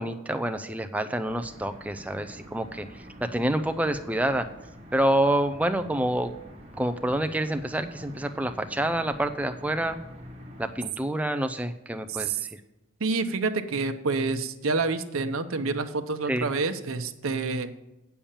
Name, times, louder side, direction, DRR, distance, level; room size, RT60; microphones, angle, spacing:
voice 1, 0.0-4.5 4.9-6.3 6.8-10.0 10.6-12.5 16.3-16.5, right 1 dB, 5° right, 8 dB, 0.5 m, -27 dB
sound 1, 1.3-10.7, equal, 30° right, 1.4 m, -46 dB
voice 2, 13.0-17.7, right 3 dB, 85° right, 8 dB, 0.8 m, -28 dB
8.6 x 7.0 x 7.3 m, 0.92 s
head